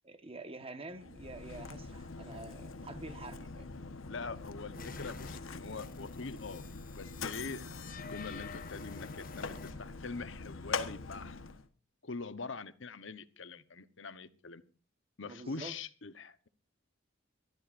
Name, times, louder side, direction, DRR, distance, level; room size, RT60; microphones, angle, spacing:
voice 1, 0.0-3.7 15.2-15.8, right 2 dB, 30° right, 1.4 m, -47 dB
Mechanisms, 0.9-11.7, left 4 dB, 80° left, 1.2 m, -43 dB
voice 2, 4.1-6.6 6.9-11.4 12.0-14.6 15.2-16.5, left 4 dB, 65° left, 1.0 m, -43 dB
sound 1, 4.7-9.7, left 5 dB, 45° left, 1.2 m, -49 dB
23.5 x 13.5 x 2.6 m
head